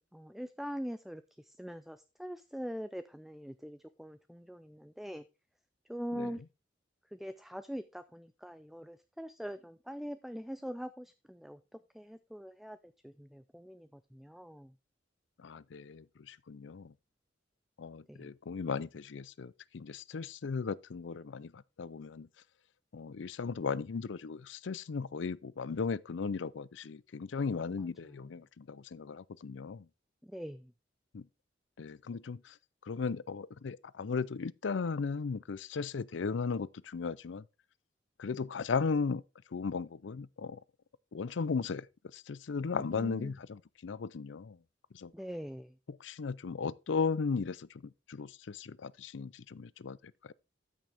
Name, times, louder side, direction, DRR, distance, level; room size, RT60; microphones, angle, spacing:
voice 1, 0.0-5.2 5.9-6.4 7.1-14.7 18.1-18.3 27.8-28.2 30.2-30.7 42.8-43.4 45.1-45.7, equal, ahead, 0.4 m, -43 dB
voice 2, 15.4-16.9 17.8-21.5 21.8-22.3 22.9-29.8 31.1-31.2 31.8-32.4 32.9-37.4 38.2-39.2 39.5-40.6 41.1-41.9 42.1-44.6 44.9-45.1 46.0-47.7 48.1-50.0, left 5 dB, 75° left, 0.5 m, -36 dB
13.0 x 6.3 x 3.4 m
head